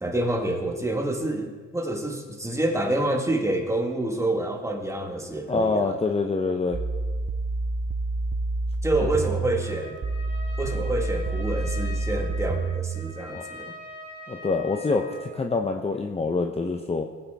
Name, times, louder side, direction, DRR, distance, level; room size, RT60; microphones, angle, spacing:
voice 1, 0.0-5.9 8.8-10.0 10.6-13.7, right 1 dB, 10° right, 2 dB, 1.8 m, -27 dB
voice 2, 5.5-6.8 9.0-9.1 13.3-13.4 14.3-17.0, left 3 dB, 20° left, 4 dB, 0.8 m, -26 dB
sound 1, 6.7-13.1, right 3 dB, 25° right, 0.7 m, -28 dB
Trumpet, 9.5-15.4, left 1 dB, 80° left, 2.6 m, -43 dB
19.0 x 8.7 x 3.5 m, 1.4 s
cardioid pair, 90°, 30 cm